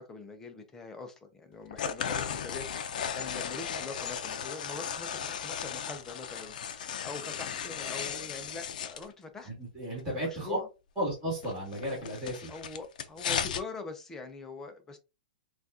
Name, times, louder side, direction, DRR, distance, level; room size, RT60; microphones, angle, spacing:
voice 1, 0.0-9.5 10.2-10.7 12.5-15.0, left 3 dB, 10° left, 0.5 m, -43 dB
sound 1, 1.7-9.1 11.4-13.6, left 8 dB, 65° left, 0.6 m, -36 dB
voice 2, 9.4-10.6 11.0-12.5, equal, 10° right, 2.2 m, -34 dB
6.0 x 2.4 x 2.7 m
hypercardioid pair, 165°, 5 cm